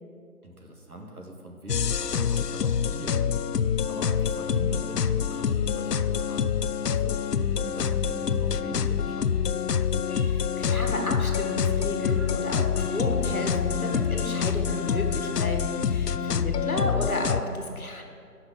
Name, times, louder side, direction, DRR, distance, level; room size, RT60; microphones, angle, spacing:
voice 1, 0.4-6.6 6.9-7.2 7.5-9.4 16.2-16.7, right 1 dB, 70° right, 1 dB, 2.0 m, -42 dB
sound 1, 1.7-17.4, left 7 dB, 90° left, 0.6 m, -26 dB
sound 2, 10.1-16.0, equal, 45° left, 1.6 m, -46 dB
voice 2, 10.2-18.0, left 1 dB, 65° left, 2 dB, 1.8 m, -32 dB
9.0 x 5.8 x 7.4 m, 2.2 s
figure-of-eight pair, 175°, 46 cm